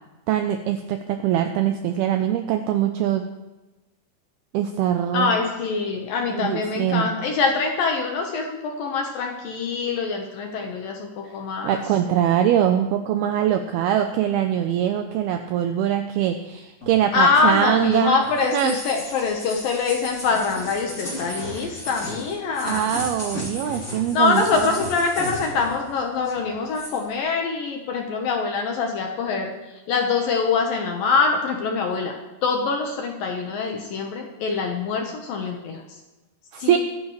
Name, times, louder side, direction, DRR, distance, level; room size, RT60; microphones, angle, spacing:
voice 1, 0.3-3.2 4.5-5.4 6.3-7.1 11.6-18.2 18.5-18.8 22.6-24.8 36.5-36.8, right 10 dB, 90° right, 6 dB, 2.2 m, -22 dB
voice 2, 5.1-11.8 17.1-22.9 24.1-29.5 29.9-32.1 32.4-35.8 36.6-36.8, left 4 dB, 70° left, 2 dB, 2.3 m, -24 dB
sound 1, 16.8-25.9 26.2-27.0, left 1 dB, 20° left, 2.8 m, -35 dB
24.0 x 10.0 x 3.2 m, 1.1 s
omnidirectional pair, 5.2 m